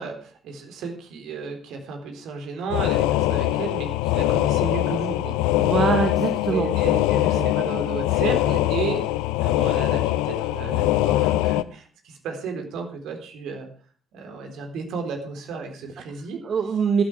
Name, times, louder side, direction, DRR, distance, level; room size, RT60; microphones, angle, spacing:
voice 1, 0.0-5.4 6.5-9.0 9.4-13.7 14.1-16.5, right 5 dB, 60° right, 5 dB, 3.8 m, -33 dB
sound 1, 2.7-11.6, left 15 dB, 70° left, 0.6 m, -22 dB
voice 2, 5.6-6.7 7.0-7.5 16.4-17.0, right 6 dB, 45° right, 7 dB, 1.6 m, -24 dB
16.0 x 12.0 x 4.7 m, 0.42 s
figure-of-eight pair, 50°, 0 cm